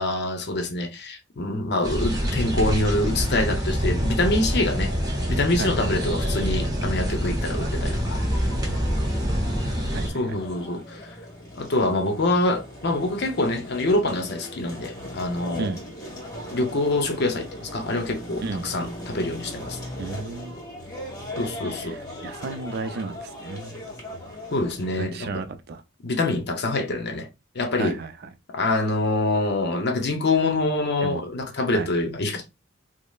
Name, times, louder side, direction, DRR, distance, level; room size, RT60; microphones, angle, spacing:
voice 1, 0.0-4.9 5.3-8.2 10.1-11.0 11.6-15.7 16.5-19.8 21.4-22.0 24.5-25.4 26.0-27.3 27.5-28.0 28.5-32.4, left 2 dB, 50° left, 0.6 m, -25 dB
sound 1, 1.8-10.1, equal, 20° right, 0.8 m, -25 dB
voice 2, 5.6-5.9 8.4-8.8 9.9-10.2 15.6-15.8 18.4-18.7 20.0-20.6 21.8-23.8 25.0-25.8 27.8-28.1 31.0-31.2 31.7-31.9, right 3 dB, 50° right, 0.4 m, -33 dB
sound 2, 8.2-25.0, equal, 15° left, 1.3 m, -39 dB
5.0 x 2.0 x 2.3 m
head